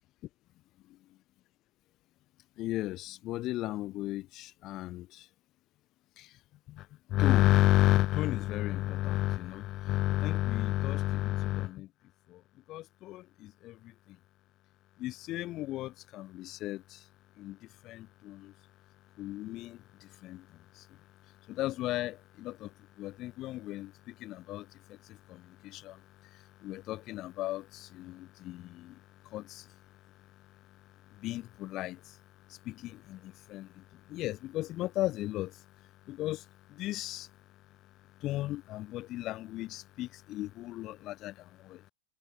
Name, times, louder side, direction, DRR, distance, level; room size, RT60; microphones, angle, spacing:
voice 1, 2.6-5.3 6.2-6.4 6.7-11.9 12.3-12.4 12.7-14.2 15.0-17.1 17.4-18.5 19.2-21.0 21.5-29.8 31.1-32.2 32.5-35.6 36.1-37.3 38.2-41.9, left 16 dB, 35° left, 2.1 m, -33 dB
figure-of-eight pair, 90°, 0 cm